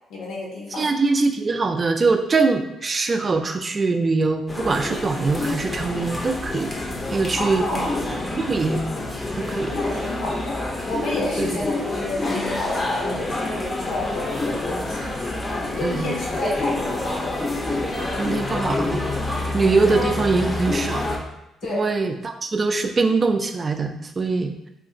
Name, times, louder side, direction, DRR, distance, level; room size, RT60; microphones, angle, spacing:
voice 1, 0.1-0.9 7.4-8.0 9.8-15.1 15.8-17.4 18.0-18.1 19.9-20.2 21.6-21.9, left 2 dB, 85° left, -3 dB, 1.0 m, -30 dB
voice 2, 0.8-6.7 7.1-7.6 8.4-8.9 9.3-9.8 11.4-11.6 15.8-16.6 18.2-21.0 21.7-24.5, right 3 dB, 35° right, 6 dB, 0.3 m, -23 dB
sound 1, 4.5-21.2, left 2 dB, 25° left, 0.5 m, -27 dB
2.4 x 2.4 x 3.7 m, 0.85 s
cardioid pair, 90°, 0 cm